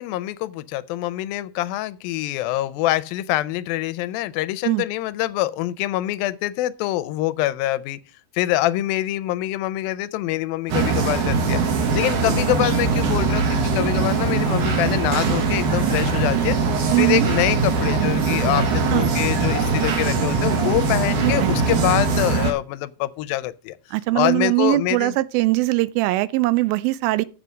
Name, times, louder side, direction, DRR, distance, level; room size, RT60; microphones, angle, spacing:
voice 1, 0.0-8.0 8.3-11.6 11.9-16.6 17.0-23.8 24.2-25.1, left 15 dB, 85° left, 2.4 m, -25 dB
sound 1, 10.7-22.5, right 4 dB, 65° right, 2.9 m, -21 dB
voice 2, 16.9-17.3 18.9-19.1 21.2-21.8 23.9-27.3, right 19 dB, 90° right, 2.4 m, -21 dB
7.5 x 6.8 x 6.2 m
omnidirectional pair, 4.1 m